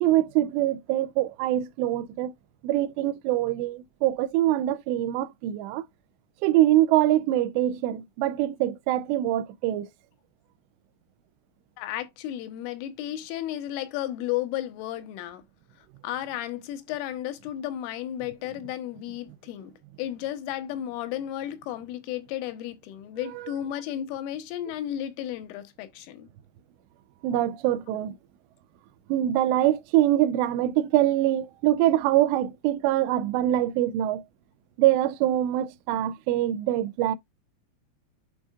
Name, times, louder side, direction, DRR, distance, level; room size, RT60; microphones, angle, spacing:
voice 1, 0.0-2.3 2.6-5.8 6.4-9.9 27.2-28.1 29.1-34.2 34.8-37.2, right 13 dB, 85° right, 2.5 m, -24 dB
voice 2, 11.8-15.4 16.0-26.3, left 12 dB, 85° left, 3.4 m, -33 dB
11.0 x 3.7 x 2.4 m
omnidirectional pair, 5.6 m